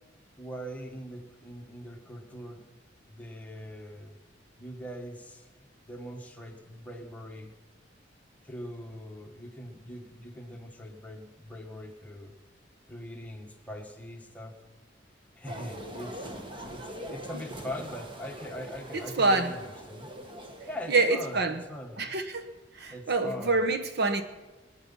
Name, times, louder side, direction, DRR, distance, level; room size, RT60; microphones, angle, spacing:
voice 1, 0.4-2.6 3.1-4.2 4.6-5.5 5.8-7.5 8.4-12.3 12.9-14.6 15.3-16.3 16.7-20.1 20.7-22.2 22.9-23.6, equal, 10° left, 1.5 m, -42 dB
sound 1, 15.5-21.4, right 1 dB, 25° right, 1.5 m, -43 dB
voice 2, 18.9-19.5 20.9-21.6 22.0-22.5 22.7-24.2, right 3 dB, 60° right, 1.1 m, -26 dB
22.5 x 9.8 x 5.6 m
head